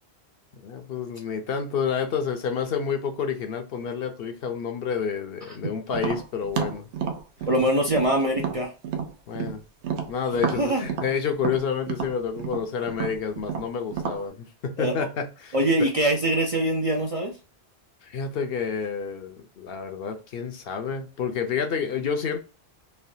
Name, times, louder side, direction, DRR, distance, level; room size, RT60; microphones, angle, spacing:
voice 1, 0.5-6.9 9.3-9.6 10.1-15.5 18.0-22.4, left 6 dB, 65° left, 0.8 m, -29 dB
Tap, 5.9-9.6 9.8-14.2, right 7 dB, 80° right, 0.9 m, -30 dB
voice 2, 7.5-8.7 10.5-10.9 14.8-14.9 15.5-17.3, right 1 dB, 45° right, 0.5 m, -23 dB
3.2 x 2.2 x 2.6 m
omnidirectional pair, 1.1 m